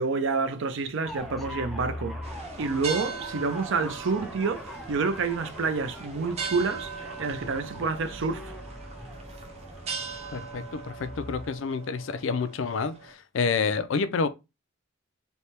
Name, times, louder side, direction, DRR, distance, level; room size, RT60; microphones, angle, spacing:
voice 1, 0.0-2.2 2.6-8.5, right 4 dB, 65° right, 0.5 m, -28 dB
sound 1, 1.0-11.5, left 1 dB, ahead, 0.5 m, -41 dB
sound 2, 2.2-13.1, right 5 dB, 30° right, 0.8 m, -40 dB
voice 2, 10.3-14.3, left 5 dB, 65° left, 0.4 m, -28 dB
3.3 x 2.2 x 4.2 m
head